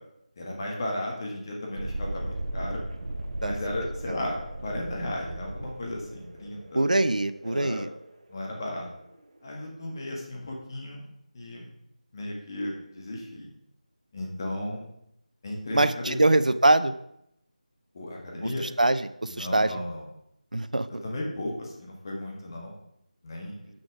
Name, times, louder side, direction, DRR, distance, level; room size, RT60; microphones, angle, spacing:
voice 1, 0.4-2.8 3.4-4.3 4.6-6.9 7.4-7.8 8.3-8.8 9.4-11.0 11.3-11.7 12.1-13.5 14.1-14.8 15.4-16.2 17.9-18.7 19.3-20.0 21.0-22.7 23.2-23.5, left 1 dB, 30° left, -1 dB, 1.6 m, -35 dB
Thunderstorm, 1.7-9.2, right 1 dB, 55° right, 1.0 m, -37 dB
voice 2, 6.7-7.9 15.7-16.9 18.4-19.7 20.5-20.9, right 2 dB, 75° right, 13 dB, 0.6 m, -23 dB
7.6 x 6.2 x 4.8 m, 0.77 s
figure-of-eight pair, 165°, 4 cm